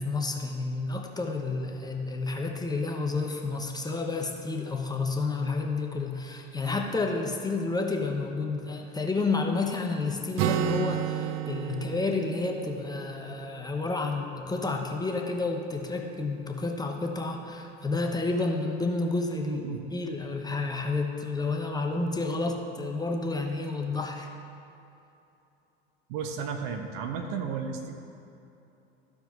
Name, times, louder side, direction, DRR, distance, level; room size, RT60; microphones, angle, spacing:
voice 1, 0.0-19.6 19.9-24.3, left 3 dB, 10° left, 1 dB, 0.9 m, -30 dB
Acoustic guitar, 10.4-14.1, right 13 dB, 45° right, 0.4 m, -32 dB
voice 2, 19.4-19.8 26.1-27.9, right 6 dB, 65° right, 5 dB, 1.0 m, -33 dB
14.0 x 4.8 x 4.0 m, 2.8 s
hypercardioid pair, 80°, 33 cm